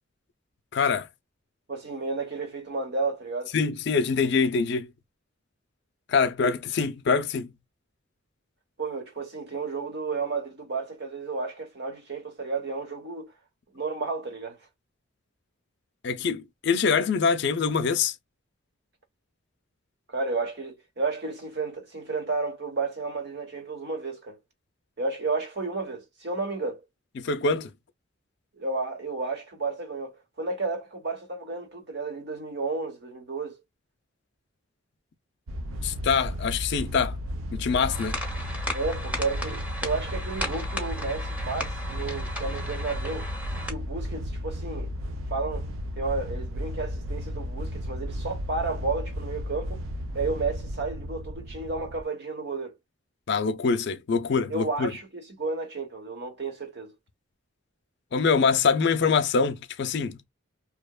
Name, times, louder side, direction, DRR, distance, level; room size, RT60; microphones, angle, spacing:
voice 1, 0.7-1.1 3.5-4.9 6.1-7.5 16.0-18.1 27.2-27.7 35.8-37.2 37.5-38.2 53.3-54.9 58.1-60.2, left 5 dB, 55° left, 0.4 m, -24 dB
voice 2, 1.7-3.5 8.8-13.3 13.7-14.6 20.1-24.4 25.0-26.8 28.5-33.6 38.7-43.3 43.7-44.9 45.3-45.7 46.0-49.8 50.1-52.8 54.5-56.9, right 3 dB, 50° right, 1.0 m, -32 dB
sound 1, 35.5-52.0, equal, 80° right, 0.5 m, -34 dB
sound 2, 37.9-43.7, left 1 dB, 5° right, 0.7 m, -36 dB
2.8 x 2.1 x 2.2 m
head